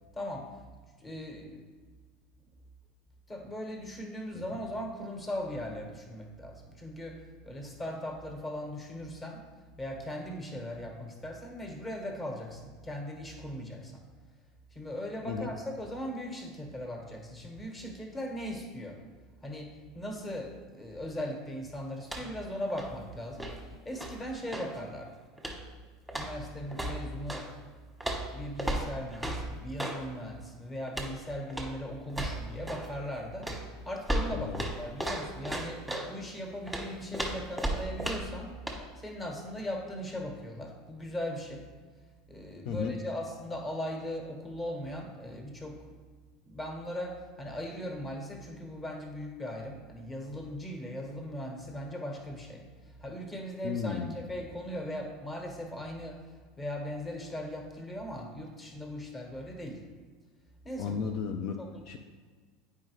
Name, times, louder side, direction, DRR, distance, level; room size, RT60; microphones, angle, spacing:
voice 1, 0.1-0.5 1.0-1.6 3.3-9.4 9.8-14.0 14.7-19.0 19.4-23.5 23.8-25.1 26.1-27.5 28.1-33.5 33.8-38.6 39.0-41.7 42.3-45.8 46.1-46.2 46.4-52.6 53.0-56.2 56.6-59.8 60.6-61.1 61.6-61.7, equal, 20° left, 3 dB, 1.2 m, -39 dB
sound 1, 22.0-22.5 22.7-24.8 25.4-25.7 26.1-27.5 28.0-30.0 30.9-31.2 31.5-31.8 32.1-32.9 33.4-36.1 36.7-38.4 38.7-38.8, right 1 dB, ahead, 1.2 m, -35 dB
voice 2, 34.3-34.7 42.6-43.0 53.6-54.2 60.8-62.0, left 6 dB, 55° left, 4 dB, 0.4 m, -34 dB
9.4 x 4.8 x 3.1 m, 1.5 s
hypercardioid pair, 80°, 0 cm